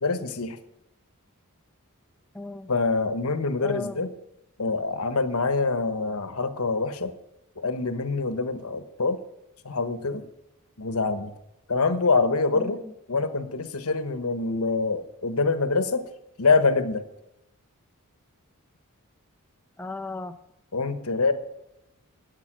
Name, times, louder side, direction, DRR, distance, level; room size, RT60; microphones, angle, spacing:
voice 1, 0.0-0.6 2.7-4.1 4.6-7.1 7.6-9.2 9.6-10.2 10.8-11.3 11.7-12.8 13.1-16.0 16.4-17.0 20.7-21.3, left 3 dB, 75° left, 10 dB, 1.1 m, -25 dB
voice 2, 2.3-2.7 3.6-4.0 12.5-12.9 19.8-20.3, left 2 dB, 10° left, 8 dB, 0.6 m, -35 dB
12.5 x 8.3 x 6.2 m, 0.88 s
head